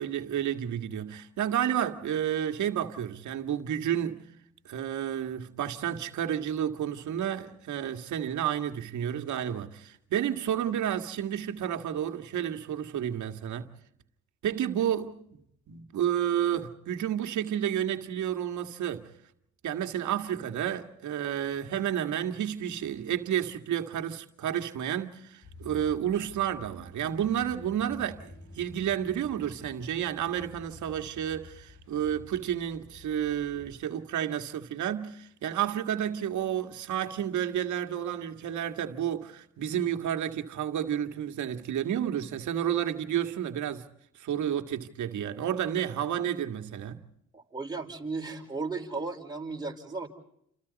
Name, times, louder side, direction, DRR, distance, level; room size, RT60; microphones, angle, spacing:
voice 1, 0.0-4.2 4.7-13.7 14.4-15.4 15.7-19.1 19.6-43.8 44.2-47.0, right 10 dB, 75° right, 2.0 m, -31 dB
sound 1, 25.4-33.7, left 2 dB, 50° left, 4.9 m, -50 dB
voice 2, 47.3-50.1, right 3 dB, 15° right, 5.1 m, -35 dB
29.0 x 28.0 x 4.1 m
cardioid pair, 90°, 30 cm